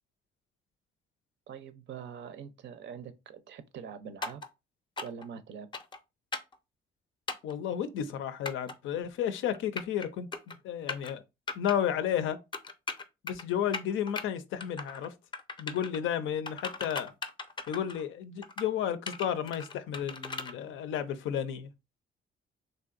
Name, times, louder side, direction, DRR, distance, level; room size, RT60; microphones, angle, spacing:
voice 1, 1.5-4.4 5.0-5.7, right 7 dB, 65° right, 0.5 m, -44 dB
sound 1, 4.2-4.5 5.0-5.3 5.7-6.0 6.3-6.6 7.3-7.5 8.5-8.7 9.5-10.1 10.3-10.6 10.9-11.1 11.5-11.8 12.5-13.4 13.7-14.2 14.6-15.1 15.3-16.0 16.5-18.0 18.4-18.7 19.1-20.5, left 3 dB, 25° left, 0.4 m, -38 dB
voice 2, 7.4-11.2 11.6-12.4 13.2-15.1 15.6-17.1 17.7-21.7, left 9 dB, 80° left, 0.5 m, -32 dB
3.3 x 2.6 x 2.4 m
cardioid pair, 90°, 20 cm